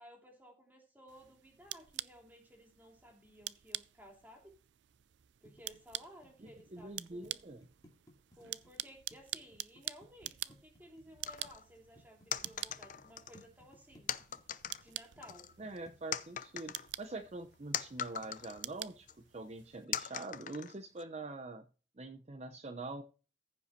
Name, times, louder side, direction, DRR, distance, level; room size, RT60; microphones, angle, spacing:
voice 1, 0.0-4.5 5.4-7.4 8.3-14.1 14.8-15.5, equal, 10° right, 1 dB, 3.0 m, -57 dB
sound 1, 1.1-19.9, right 15 dB, 85° right, 0.4 m, -47 dB
sound 2, 5.4-11.5 11.9-13.0 13.3-16.2, left 1 dB, 20° left, 2.5 m, -60 dB
voice 2, 6.4-7.7 15.6-21.6 22.0-23.0, right 2 dB, 40° right, 8 dB, 0.6 m, -45 dB
sound 3, 11.3-11.6 12.3-13.5 14.1-14.8 15.2-15.8 16.1-18.6 19.1-19.2 19.9-21.0, left 9 dB, 45° left, 0.6 m, -40 dB
15.0 x 5.4 x 4.4 m, 0.36 s
head